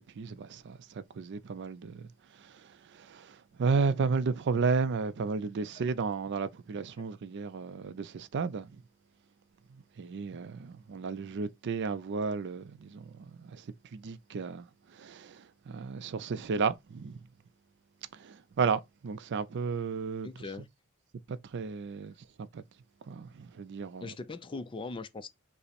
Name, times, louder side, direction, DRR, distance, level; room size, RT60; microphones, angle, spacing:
voice 1, 0.0-2.1 2.4-8.8 9.7-14.7 14.9-17.2 18.1-20.3 21.3-22.6 23.1-24.1, right 5 dB, 50° right, 0.4 m, -33 dB
voice 2, 20.2-20.7 24.0-25.3, left 3 dB, 20° left, 0.3 m, -40 dB
5.4 x 2.0 x 4.2 m
head